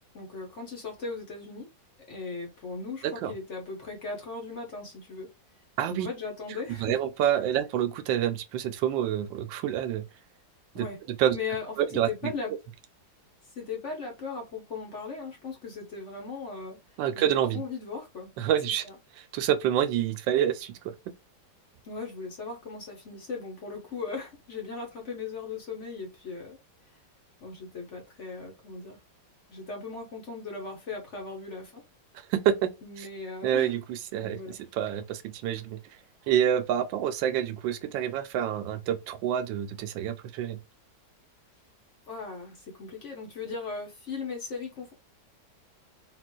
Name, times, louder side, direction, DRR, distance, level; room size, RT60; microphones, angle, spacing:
voice 1, 0.1-1.7 2.1-5.3 5.9-7.0 10.7-11.0 11.3-11.7 12.0-12.5 13.5-18.3 18.7-18.9 21.8-26.6 27.4-29.0 29.5-31.8 32.8-33.7 34.1-34.6 42.1-44.9, left 4 dB, 50° left, 1.1 m, -38 dB
voice 2, 6.8-10.0 10.7-10.9 11.2-11.4 11.8-12.3 17.0-17.6 18.4-18.8 19.2-20.9 32.3-32.7 33.0-33.1 33.4-35.8 36.3-40.6, right 10 dB, 85° right, 1.3 m, -27 dB
3.9 x 2.5 x 2.2 m
omnidirectional pair, 2.0 m